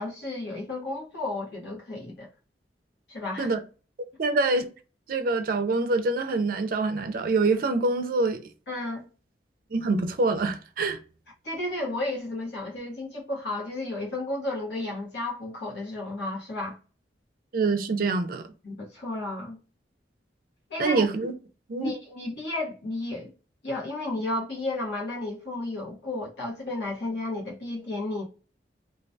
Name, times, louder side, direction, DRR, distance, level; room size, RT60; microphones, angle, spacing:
voice 1, 0.0-2.3 3.1-3.5 8.7-9.0 11.4-16.8 18.6-19.6 20.7-21.0 21.8-23.3 23.6-28.2, left 2 dB, 75° left, 0.9 m, -33 dB
voice 2, 4.2-4.7 5.1-8.4 9.7-11.0 17.5-18.5 20.8-21.3 21.7-21.9, right 3 dB, 50° right, 0.4 m, -25 dB
2.3 x 2.1 x 2.6 m
head